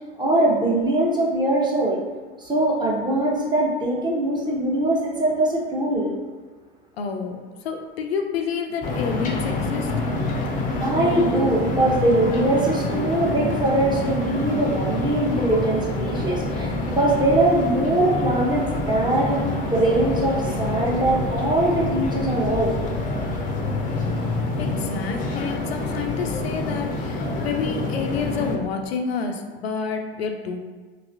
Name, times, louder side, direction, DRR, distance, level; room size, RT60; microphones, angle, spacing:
voice 1, 0.2-2.0 2.4-6.1 10.8-22.7, right 1 dB, 15° right, -2 dB, 0.7 m, -22 dB
voice 2, 7.0-7.4 7.6-9.9 24.6-30.6, left 5 dB, 80° left, 4 dB, 0.5 m, -28 dB
sound 1, 8.8-28.6, left 2 dB, 25° left, 0.5 m, -27 dB
3.1 x 2.8 x 2.5 m, 1.4 s
figure-of-eight pair, 75°, 31 cm